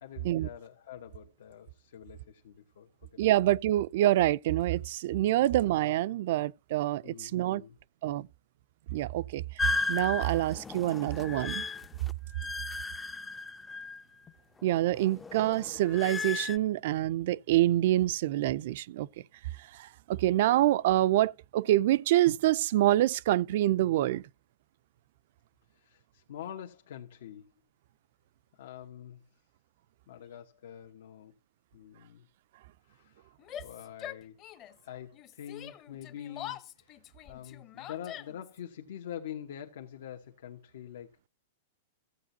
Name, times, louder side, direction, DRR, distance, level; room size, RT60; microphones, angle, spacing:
voice 1, 0.0-3.2 5.3-5.6 7.0-7.8 10.3-10.5 25.7-27.4 28.5-29.2 30.1-31.3 31.7-32.3 32.8-33.3 33.6-34.4 34.8-37.0 37.3-41.3, left 10 dB, 75° left, 1.3 m, -45 dB
voice 2, 3.2-7.6 8.0-8.3 8.9-9.4 9.9-11.6 14.6-19.1 19.7-24.2, right 14 dB, 60° right, 0.4 m, -26 dB
sound 1, 9.6-14.3 14.6-16.6, left 3 dB, 10° left, 0.5 m, -35 dB
Yell, 33.4-34.8 35.1-38.6, left 11 dB, 30° left, 0.9 m, -44 dB
15.0 x 8.1 x 2.7 m
supercardioid pair, 145°, 0 cm